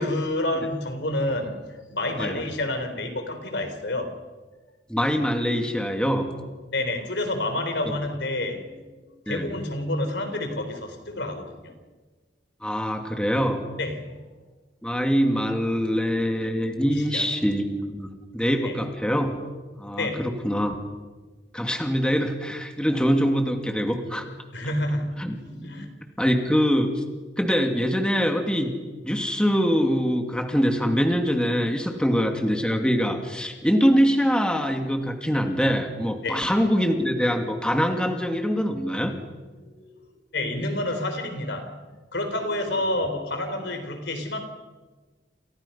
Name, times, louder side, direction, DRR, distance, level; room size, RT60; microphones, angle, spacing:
voice 1, 0.0-4.2 6.7-8.9 9.3-11.7 13.8-14.2 15.8-15.9 16.9-17.3 18.6-18.8 20.0-20.3 24.5-25.9 36.2-36.5 39.6-40.0 40.3-44.4, left 1 dB, 70° left, 4.1 m, -29 dB
voice 2, 4.9-6.3 9.3-9.5 12.6-13.6 14.8-17.7 17.9-19.3 19.8-20.8 21.5-24.3 25.2-25.3 26.2-27.0 27.4-28.7 29.0-39.1, equal, 5° left, 2.4 m, -24 dB
29.0 x 28.5 x 5.7 m
head